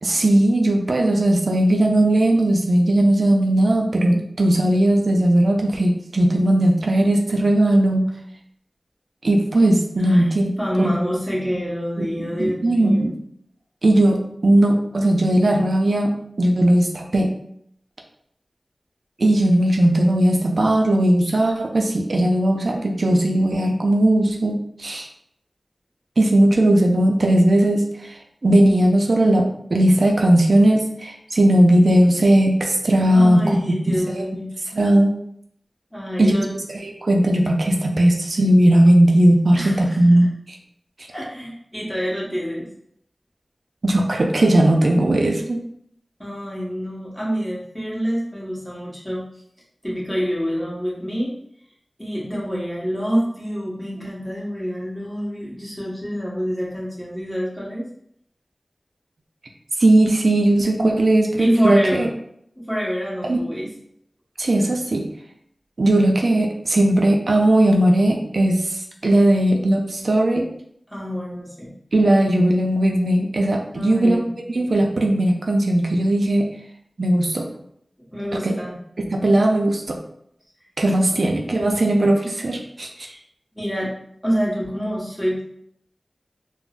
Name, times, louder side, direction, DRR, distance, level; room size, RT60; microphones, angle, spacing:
voice 1, 0.0-8.1 9.2-10.5 10.8-10.9 12.0-13.1 13.8-17.3 19.2-25.1 26.2-34.3 34.7-35.2 36.2-36.3 36.8-40.6 43.8-45.6 59.8-62.1 63.2-63.4 64.4-65.1 65.8-70.5 71.9-74.2 74.5-76.5 77.0-77.5 78.3-78.5 79.1-80.0 80.8-83.1, right 1 dB, 75° right, 2 dB, 0.4 m, -18 dB
voice 2, 10.0-10.3 10.6-13.1 33.1-34.5 35.9-36.5 39.5-40.3 41.1-42.7 46.2-49.2 49.8-51.3 52.0-57.8 60.7-60.9 61.4-62.1 62.7-63.7 70.9-71.7 73.7-74.2 78.1-78.7 81.1-81.2 82.9-83.2 83.5-83.9 84.2-85.4, equal, 10° left, -6 dB, 1.2 m, -26 dB
3.6 x 2.0 x 2.4 m, 0.70 s
wide cardioid pair, 50°, 0 cm